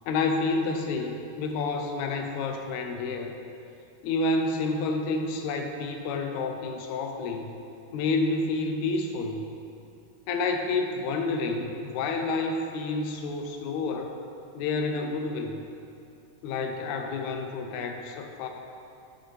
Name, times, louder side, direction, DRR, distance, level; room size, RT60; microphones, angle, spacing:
voice 1, 0.1-3.4 4.0-7.5 7.9-9.5 10.3-14.2 14.5-15.6 16.4-18.5, left 3 dB, 80° left, 4 dB, 1.9 m, -29 dB
8.9 x 7.3 x 3.2 m, 2.6 s
omnidirectional pair, 3.5 m